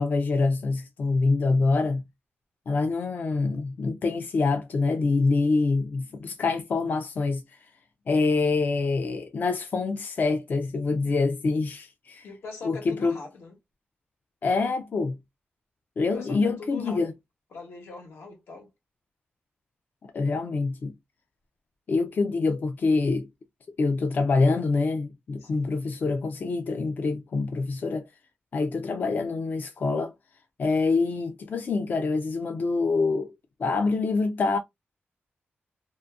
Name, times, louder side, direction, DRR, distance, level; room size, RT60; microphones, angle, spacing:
voice 1, 0.0-2.0 2.7-7.4 8.1-12.3 12.6-13.2 14.4-15.2 16.0-17.1 20.1-20.9 21.9-23.3 23.8-28.1 28.5-30.1 30.6-34.6, left 3 dB, 45° left, 0.3 m, -25 dB
voice 2, 12.2-13.6 16.1-17.0 17.5-18.7 25.4-25.7, left 3 dB, 85° left, 1.1 m, -42 dB
2.6 x 2.5 x 2.3 m
wide cardioid pair, 145°, 4 cm